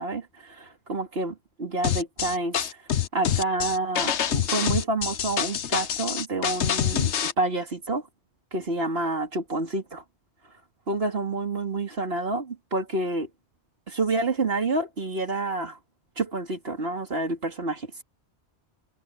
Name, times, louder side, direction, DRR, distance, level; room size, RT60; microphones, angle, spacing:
voice 1, 0.0-2.6 3.1-8.0 8.5-10.0 10.9-13.3 13.9-15.8 16.2-18.0, right 2 dB, 60° right, 2.8 m, -28 dB
sound 1, 1.8-7.3, left 9 dB, 80° left, 1.2 m, -26 dB
omnidirectional pair, 1.2 m